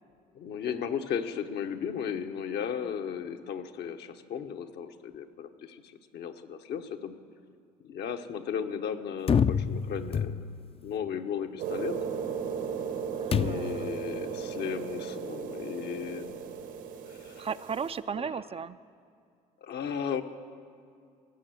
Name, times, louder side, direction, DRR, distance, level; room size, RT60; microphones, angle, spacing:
voice 1, 0.3-7.1 7.8-10.4 10.8-12.0 13.3-16.3 17.1-17.5 18.2-18.4 19.6-20.2, left 8 dB, 65° left, 6 dB, 1.0 m, -35 dB
sound 1, 9.3-10.8 13.3-13.9, left 7 dB, 30° left, 0.5 m, -27 dB
sound 2, 11.6-18.0, right 7 dB, 75° right, 1.4 m, -36 dB
voice 2, 13.2-13.9 17.4-18.8, right 6 dB, 30° right, 13 dB, 0.4 m, -35 dB
18.0 x 6.8 x 8.1 m, 2.4 s
supercardioid pair, 65°, 19 cm